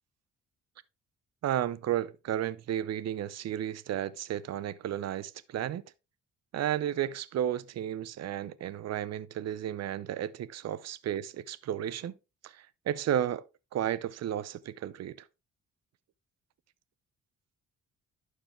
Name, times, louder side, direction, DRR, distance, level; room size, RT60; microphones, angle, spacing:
voice 1, 1.4-5.8 6.5-12.1 12.4-13.4 13.7-15.2, right 11 dB, 60° right, 0.7 m, -33 dB
11.5 x 4.7 x 3.2 m
cardioid pair, 90°, 30 cm